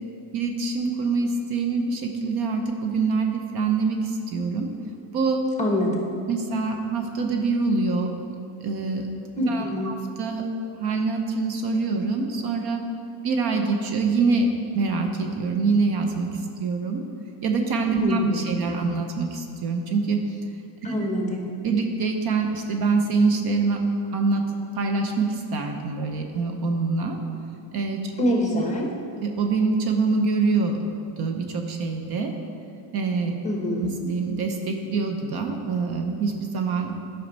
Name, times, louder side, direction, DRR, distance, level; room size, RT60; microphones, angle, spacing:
voice 1, 0.3-4.7 5.1-5.5 6.3-8.2 8.6-9.1 9.5-10.5 10.8-12.8 13.2-16.3 16.6-17.0 17.4-20.2 20.8-20.9 21.6-23.8 24.1-27.2 27.7-28.1 28.5-28.6 29.2-30.8 31.1-32.3 32.9-33.3 33.8-36.9, right 4 dB, 50° right, 4 dB, 0.9 m, -25 dB
voice 2, 5.6-5.9 9.4-9.9 18.0-18.8 20.8-21.5 28.2-28.9 33.4-33.9, left 1 dB, 15° left, 0 dB, 1.2 m, -25 dB
11.0 x 5.7 x 4.1 m, 2.4 s
cardioid pair, 135°, 48 cm